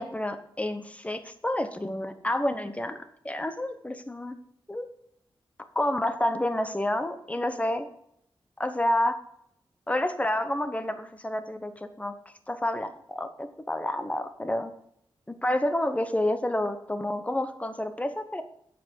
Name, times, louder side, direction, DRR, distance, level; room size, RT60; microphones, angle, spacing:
voice 1, 0.0-3.0 3.2-4.4 4.7-4.9 5.7-7.9 8.6-9.1 9.9-12.1 12.5-14.7 15.3-18.4, left 1 dB, 15° left, 9 dB, 1.0 m, -29 dB
8.8 x 6.0 x 7.0 m, 0.73 s
wide cardioid pair, 110°, 9 cm